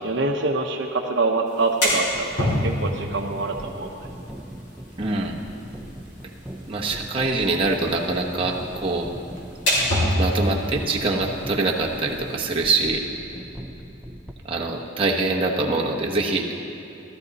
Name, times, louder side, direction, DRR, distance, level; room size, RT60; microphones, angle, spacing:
voice 1, 0.0-4.1, right 3 dB, 55° right, 2 dB, 0.8 m, -25 dB
sound 1, 1.5-12.7, equal, 55° left, 3.4 m, -29 dB
sound 2, 1.9-14.3, equal, 5° right, 0.5 m, -40 dB
voice 2, 5.0-5.4 6.7-9.1 10.2-13.1 14.4-16.5, right 3 dB, 25° right, -2 dB, 1.0 m, -24 dB
15.0 x 13.5 x 4.1 m, 3.0 s
head